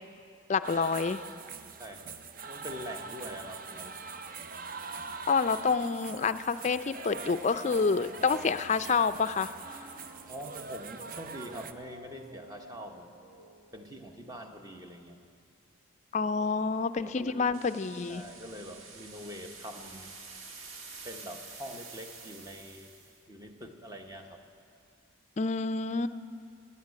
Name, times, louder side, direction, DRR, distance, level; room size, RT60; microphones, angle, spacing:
voice 1, 0.5-1.2 5.3-9.5 16.1-18.2 25.4-26.1, left 5 dB, 35° left, 12 dB, 0.4 m, -28 dB
sound 1, 0.6-11.7, right 5 dB, 40° right, 0.5 m, -43 dB
voice 2, 1.8-4.0 10.3-13.1 13.7-15.3 16.4-16.5 17.0-17.4 18.1-20.2 21.0-22.9 23.3-24.4, equal, 20° right, 4 dB, 1.0 m, -44 dB
sound 2, 3.2-13.6, equal, 60° right, 1.9 m, -51 dB
sound 3, 17.5-23.2, right 4 dB, 80° right, 1.5 m, -48 dB
16.5 x 9.6 x 8.3 m, 2.4 s
head